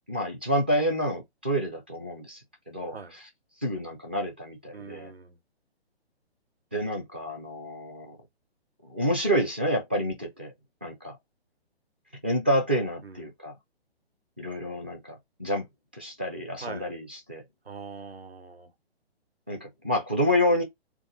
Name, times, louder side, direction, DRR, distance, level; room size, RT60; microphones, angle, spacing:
voice 1, 0.1-2.4 2.7-3.0 3.6-5.1 6.7-8.2 8.9-10.5 10.8-11.2 12.2-13.5 14.4-15.7 15.9-17.4 19.5-20.6, equal, 10° right, 0.4 m, -28 dB
voice 2, 4.7-5.4 13.0-13.2 16.6-16.9 17.6-18.7, right 4 dB, 70° right, 1.3 m, -42 dB
3.8 x 3.4 x 3.9 m
figure-of-eight pair, 130°, 32 cm